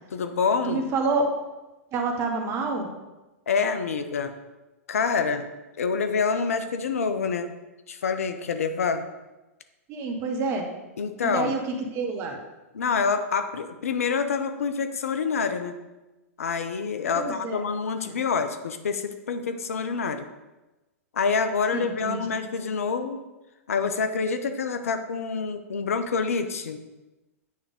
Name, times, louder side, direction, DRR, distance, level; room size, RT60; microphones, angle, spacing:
voice 1, 0.1-0.8 3.5-4.3 4.9-5.5 5.8-7.5 7.9-9.0 11.0-11.5 12.7-15.7 16.4-20.3 21.1-23.2 23.7-26.8, left 5 dB, 70° left, 9 dB, 0.5 m, -27 dB
voice 2, 0.7-1.2 1.9-2.9 9.9-10.7 11.2-11.6 11.9-12.4 17.1-17.6 18.0-18.1 21.7-22.2, right 4 dB, 35° right, 3 dB, 1.1 m, -28 dB
8.9 x 3.4 x 3.5 m, 1.1 s
figure-of-eight pair, 105°, 8 cm